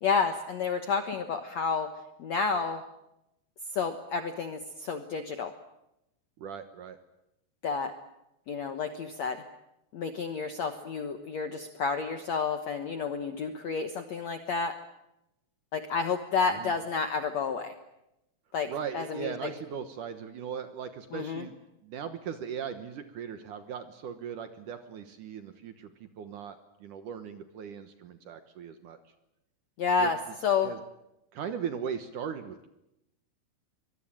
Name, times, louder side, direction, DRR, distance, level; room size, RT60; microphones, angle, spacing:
voice 1, 0.0-1.9 2.2-2.8 3.7-5.5 7.6-7.9 8.5-9.4 9.9-14.7 15.7-17.7 18.5-19.5 21.1-21.4 29.8-30.7, left 5 dB, 65° left, 7 dB, 1.7 m, -30 dB
voice 2, 6.4-7.0 16.5-16.7 18.7-21.6 21.8-29.0 30.0-30.1 30.6-30.8 31.3-32.7, right 7 dB, 65° right, 9 dB, 2.3 m, -38 dB
24.0 x 21.5 x 9.0 m, 0.88 s
omnidirectional pair, 4.8 m